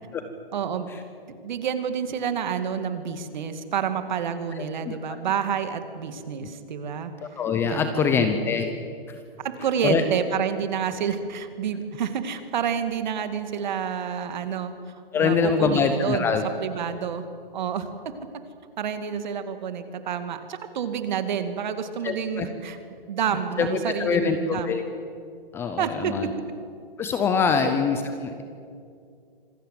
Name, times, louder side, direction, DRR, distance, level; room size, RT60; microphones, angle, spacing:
voice 1, 0.5-0.9 1.4-8.3 9.4-14.7 15.1-16.4 16.6-17.2 17.5-18.2 18.8-22.8 23.1-24.8 25.8-26.3 27.5-27.7, right 7 dB, 50° right, 9 dB, 2.2 m, -29 dB
voice 2, 7.2-8.7 9.1-9.2 9.8-10.0 15.1-16.5 22.0-22.5 23.6-23.7 24.0-24.8 25.5-26.3 27.0-28.4, left 6 dB, 10° left, 8 dB, 0.6 m, -24 dB
26.0 x 19.0 x 7.7 m, 2.4 s
hypercardioid pair, 155°, 29 cm